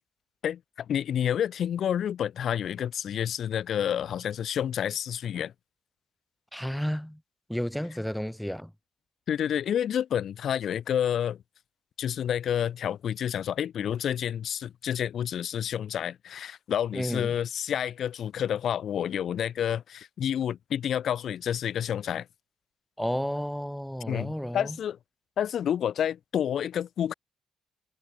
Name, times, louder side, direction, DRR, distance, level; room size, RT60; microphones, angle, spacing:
voice 1, 0.4-5.5 9.3-11.4 12.0-22.3 24.1-25.0 25.4-27.1, left 9 dB, 65° left, 3.8 m, -29 dB
voice 2, 6.5-7.2 7.5-8.7 16.9-17.3 23.0-24.8, equal, ahead, 4.4 m, -32 dB
cardioid pair, 90°, 0 cm